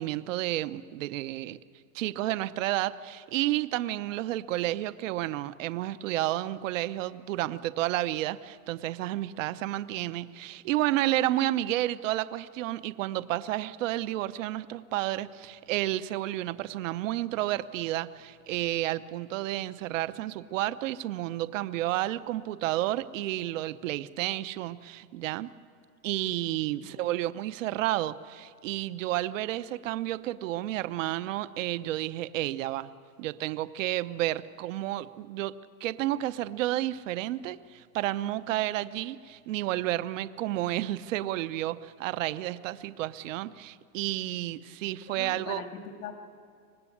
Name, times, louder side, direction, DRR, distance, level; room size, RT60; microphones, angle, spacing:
voice 1, 0.0-1.6 1.9-25.5 26.0-32.9 33.2-35.6 35.8-45.6, right 15 dB, 60° right, 14 dB, 0.8 m, -31 dB
voice 2, 26.8-27.1 45.1-46.1, left 6 dB, 85° left, 4 dB, 2.4 m, -41 dB
24.5 x 19.5 x 8.6 m, 2.3 s
supercardioid pair, 160°, 43 cm